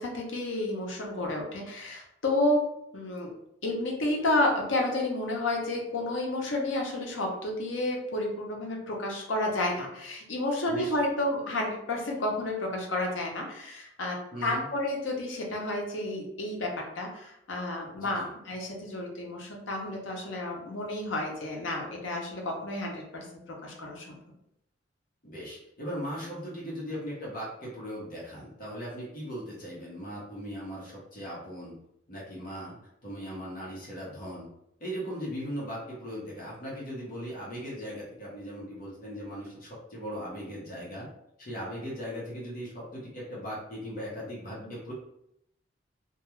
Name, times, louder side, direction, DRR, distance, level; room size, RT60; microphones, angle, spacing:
voice 1, 0.0-2.7 2.9-3.4 3.6-24.2 44.6-44.7, left 1 dB, 85° left, 0 dB, 0.7 m, -31 dB
voice 2, 14.3-14.6 17.9-18.3 25.2-31.8 32.1-32.8 33.0-34.5 34.8-41.1 41.4-44.9, equal, 50° left, -6 dB, 0.9 m, -38 dB
2.3 x 2.3 x 3.0 m, 0.77 s
head